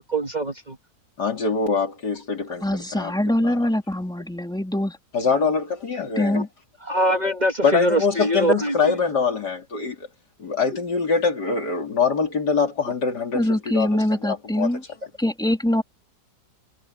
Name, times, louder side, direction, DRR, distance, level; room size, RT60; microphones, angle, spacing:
voice 1, 0.1-0.8 6.3-6.4 6.8-8.9, right 1 dB, 25° right, 1.8 m, -23 dB
voice 2, 1.2-2.7 2.9-3.1 3.4-3.6 5.1-6.4 7.6-10.0 10.4-14.8, left 5 dB, 80° left, 3.6 m, -24 dB
voice 3, 2.6-5.0 6.2-6.5 13.3-14.8 15.2-15.8, left 1 dB, ahead, 2.8 m, -23 dB
omnidirectional pair, 1.7 m